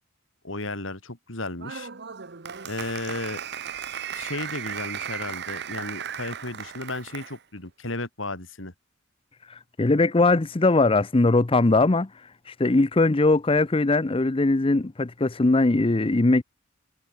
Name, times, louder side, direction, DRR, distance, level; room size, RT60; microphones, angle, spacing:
voice 1, 0.4-1.9 2.6-3.4 4.1-8.7, left 2 dB, 75° left, 4.7 m, -34 dB
Applause, 1.6-7.4, right 8 dB, 55° right, 1.1 m, -36 dB
voice 2, 9.4-16.4, left 2 dB, 25° left, 0.6 m, -21 dB
head